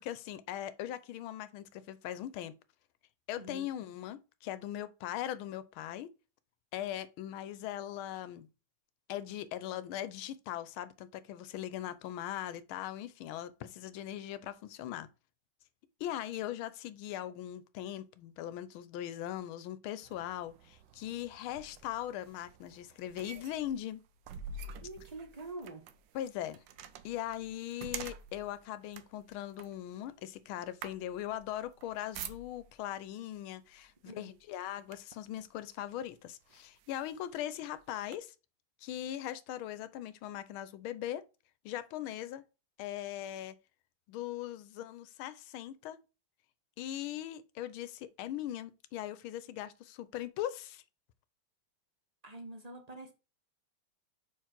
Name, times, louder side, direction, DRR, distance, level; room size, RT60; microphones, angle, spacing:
voice 1, 0.0-2.6 3.3-6.1 6.7-8.5 9.1-15.1 16.0-24.0 26.1-26.6 27.0-38.3 38.8-41.2 41.6-42.4 42.8-43.5 44.1-46.0 46.8-50.8, left 12 dB, 80° left, 1.5 m, -40 dB
sound 1, 20.0-32.9 33.7-33.9 34.3-35.3 36.0-36.1 36.5-38.2, right 5 dB, 70° right, 1.3 m, -48 dB
voice 2, 24.8-25.8 34.0-34.3 42.0-42.1 52.2-53.1, right 2 dB, 30° right, 0.8 m, -46 dB
5.3 x 4.6 x 5.9 m
omnidirectional pair, 2.3 m